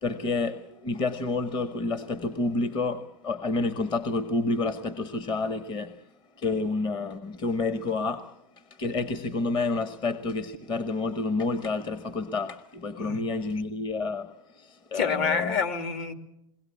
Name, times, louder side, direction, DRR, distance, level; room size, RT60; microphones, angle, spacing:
voice 1, 0.0-6.0 6.4-8.3 8.8-15.6, left 3 dB, 30° left, 1.0 m, -29 dB
voice 2, 14.9-16.1, left 6 dB, 55° left, 2.2 m, -27 dB
21.5 x 18.0 x 8.3 m
hypercardioid pair, 120°, 17 cm